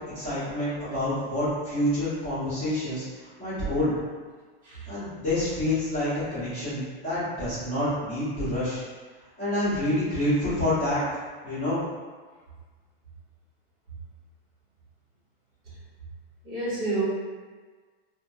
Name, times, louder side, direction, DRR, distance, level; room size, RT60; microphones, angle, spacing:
voice 1, 0.1-3.0 3.4-4.0 4.9-8.8 9.4-11.0 11.4-11.8, left 1 dB, 20° left, -14 dB, 1.3 m, -27 dB
voice 2, 16.4-17.0, right 2 dB, 15° right, -13 dB, 0.9 m, -29 dB
2.9 x 2.2 x 2.6 m, 1.5 s
supercardioid pair, 180°, 30 cm